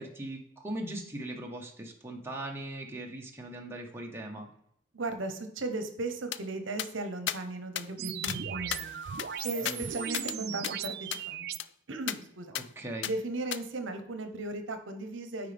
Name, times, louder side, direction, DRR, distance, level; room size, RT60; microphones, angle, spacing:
voice 1, 0.0-4.5 9.6-9.8 12.5-13.1, right 1 dB, 10° right, 0 dB, 0.9 m, -39 dB
voice 2, 4.9-8.9 9.4-11.5 11.9-12.5 13.0-15.5, right 2 dB, 70° right, 8 dB, 0.9 m, -36 dB
sound 1, 6.3-6.4 6.8-6.9 7.3-7.4 7.8-7.9 8.2-8.4 8.7-10.4 10.6-10.7 11.1-11.2 11.6-11.7 12.1-12.2 12.5-12.7 13.0-13.1 13.5-13.6, left 11 dB, 60° left, 0.3 m, -35 dB
sound 2, 8.0-11.6, right 8 dB, 50° right, 0.3 m, -37 dB
9.0 x 4.8 x 3.4 m, 0.74 s
head